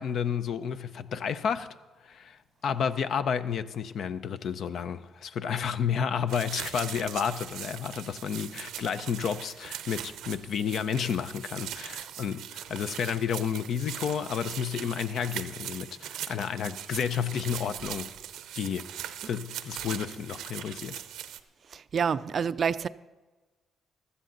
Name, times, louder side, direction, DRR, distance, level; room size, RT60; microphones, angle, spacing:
voice 1, 0.0-1.7 2.0-18.1 18.6-18.9 19.3-21.0, left 7 dB, 65° left, 0.6 m, -31 dB
sound 1, 6.3-21.4, right 11 dB, 85° right, 0.7 m, -40 dB
voice 2, 21.7-22.9, right 7 dB, 50° right, 0.4 m, -28 dB
15.5 x 12.5 x 3.9 m
cardioid pair, 90°, 0 cm